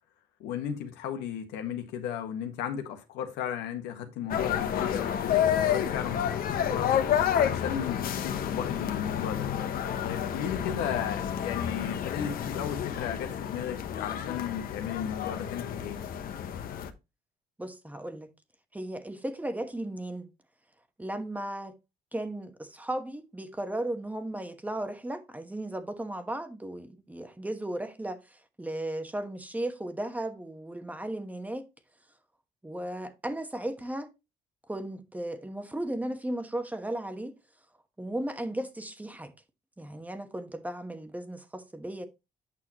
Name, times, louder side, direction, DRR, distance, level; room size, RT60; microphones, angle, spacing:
voice 1, 0.4-6.9 7.3-9.5 10.0-16.0, left 9 dB, 90° left, 1.6 m, -35 dB
sound 1, 4.3-16.9, left 9 dB, 60° left, 1.1 m, -30 dB
voice 2, 17.6-18.3 18.7-20.3 21.0-21.7 22.1-31.7 32.6-34.1 34.7-37.3 38.0-39.3 39.8-42.1, right 1 dB, 10° right, 1.2 m, -35 dB
8.8 x 6.3 x 3.0 m
cardioid pair, 110°, 17 cm